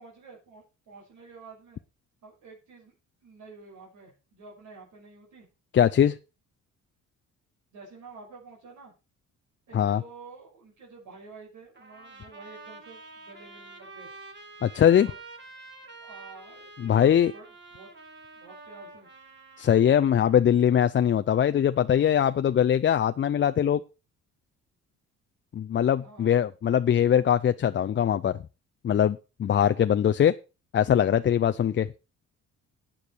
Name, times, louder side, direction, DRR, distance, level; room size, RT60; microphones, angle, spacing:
voice 1, 0.0-1.8 2.2-3.0 3.2-5.5 7.7-8.9 9.7-14.1 15.0-15.1 15.8-17.9 18.3-19.1 26.0-26.4, right 4 dB, 80° right, 6.0 m, -49 dB
voice 2, 5.7-6.2 9.7-10.0 14.6-15.1 16.8-17.3 19.6-23.8 25.5-28.4 28.8-30.3 30.7-31.9, left 9 dB, 40° left, 0.5 m, -22 dB
Trumpet, 11.8-20.4, right 3 dB, 35° right, 2.8 m, -48 dB
11.5 x 8.8 x 4.6 m
cardioid pair, 90°, 30 cm